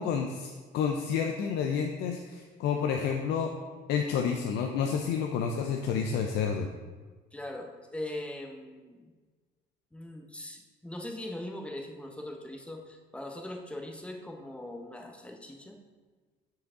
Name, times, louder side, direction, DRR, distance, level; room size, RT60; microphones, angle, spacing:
voice 1, 0.0-3.5 3.9-6.7, left 7 dB, 80° left, 3 dB, 0.5 m, -30 dB
voice 2, 7.3-9.1 9.9-15.8, left 1 dB, 5° left, 2 dB, 0.8 m, -41 dB
6.6 x 4.9 x 3.7 m, 1.4 s
cardioid pair, 110°, 17 cm